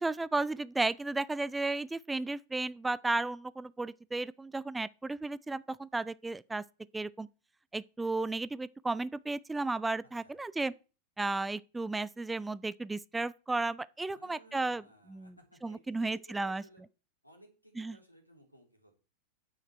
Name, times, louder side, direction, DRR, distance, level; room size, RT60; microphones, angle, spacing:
voice 1, 0.0-6.6 6.9-7.3 7.7-10.7 11.2-14.8 15.1-15.3 15.6-16.6 17.8-18.0, right 3 dB, 10° right, 0.4 m, -34 dB
voice 2, 10.0-10.4 14.1-16.8 17.2-18.9, equal, 90° left, 3.0 m, -58 dB
9.6 x 9.1 x 4.5 m
figure-of-eight pair, 90°, 0 cm